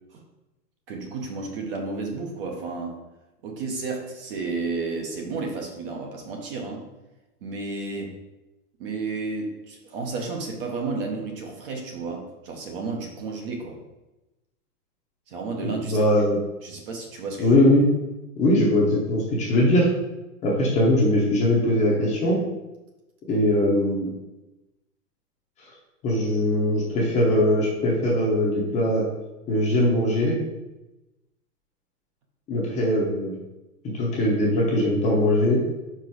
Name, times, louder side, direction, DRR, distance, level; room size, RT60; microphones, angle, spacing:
voice 1, 0.9-3.0 3.4-6.9 7.4-8.1 8.8-13.8 15.3-16.0 16.6-17.6, right 3 dB, 35° right, 1 dB, 0.8 m, -32 dB
voice 2, 15.6-16.4 17.4-17.9 18.4-19.9 20.4-22.4 23.3-24.1 26.0-29.0 29.5-30.3 32.5-33.3 33.9-35.6, left 1 dB, 15° left, -4 dB, 0.8 m, -21 dB
4.5 x 4.5 x 4.7 m, 1.0 s
hypercardioid pair, 155°, 49 cm